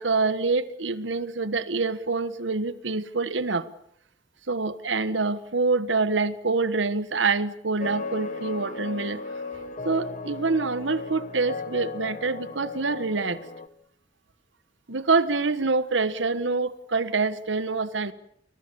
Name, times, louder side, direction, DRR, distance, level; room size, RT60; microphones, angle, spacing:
voice 1, 0.0-3.6 4.5-9.2 9.8-13.4 14.9-18.1, right 3 dB, 80° right, 1.3 m, -26 dB
sound 1, 7.8-13.7, left 3 dB, 45° left, 1.3 m, -36 dB
30.0 x 22.0 x 7.0 m
head